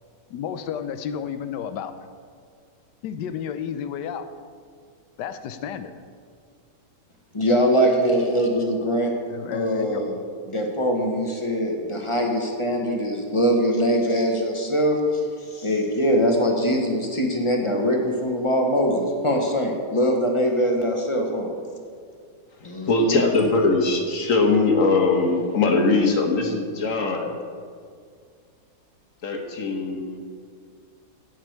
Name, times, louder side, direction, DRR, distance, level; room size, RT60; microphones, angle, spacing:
voice 1, 0.3-1.9 3.0-4.3 5.2-5.9 9.3-10.0, left 8 dB, 80° left, 11 dB, 1.3 m, -32 dB
voice 2, 7.3-9.1 9.5-10.2 10.4-15.0 15.5-21.5 22.6-23.2, equal, 20° left, 2 dB, 1.0 m, -22 dB
voice 3, 22.6-27.4 29.2-30.2, left 3 dB, 50° left, 3 dB, 1.4 m, -21 dB
16.0 x 6.5 x 4.6 m, 2.2 s
omnidirectional pair, 1.8 m